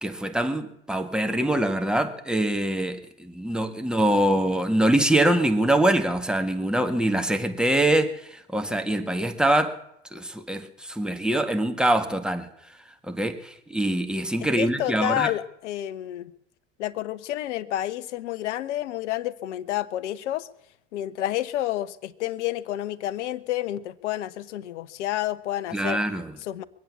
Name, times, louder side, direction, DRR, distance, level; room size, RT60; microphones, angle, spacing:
voice 1, 0.0-9.8 10.1-12.5 13.1-15.3 25.7-26.3, right 1 dB, ahead, 1.8 m, -24 dB
voice 2, 14.4-16.3 16.8-20.5 20.9-26.0 26.4-26.6, left 13 dB, 70° left, 0.9 m, -30 dB
22.5 x 8.6 x 7.2 m
hypercardioid pair, 70°, 36 cm